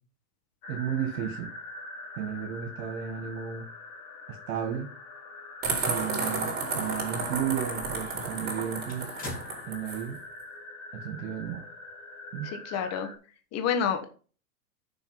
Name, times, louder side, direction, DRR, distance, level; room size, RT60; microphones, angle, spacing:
sound 1, 0.6-13.1, left 2 dB, 50° left, 3.8 m, -44 dB
voice 1, 0.7-1.5 2.1-3.7 4.3-4.9 5.9-9.1 9.7-10.2 10.9-11.7 12.3-12.5, right 8 dB, 65° right, 4 dB, 1.9 m, -33 dB
sound 2, 5.6-10.0, right 4 dB, 20° right, 3.7 m, -32 dB
sound 3, 6.4-7.0 7.5-7.6 8.1-10.2 10.5-10.6 11.8-11.9, left 2 dB, 20° left, 4.6 m, -45 dB
voice 2, 12.4-13.1 13.5-14.1, left 7 dB, 35° left, 7 dB, 1.5 m, -28 dB
6.9 x 6.1 x 5.7 m, 0.38 s
hypercardioid pair, 110°, 43 cm